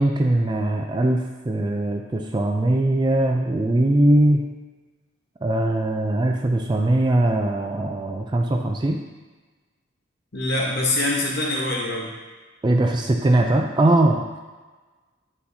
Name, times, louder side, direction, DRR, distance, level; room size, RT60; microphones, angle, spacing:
voice 1, 0.0-4.4 5.4-9.0 12.6-14.4, right 1 dB, 20° right, 2 dB, 0.3 m, -21 dB
voice 2, 10.3-12.1, left 2 dB, 55° left, -3 dB, 1.0 m, -24 dB
9.7 x 4.2 x 2.8 m, 1.3 s
head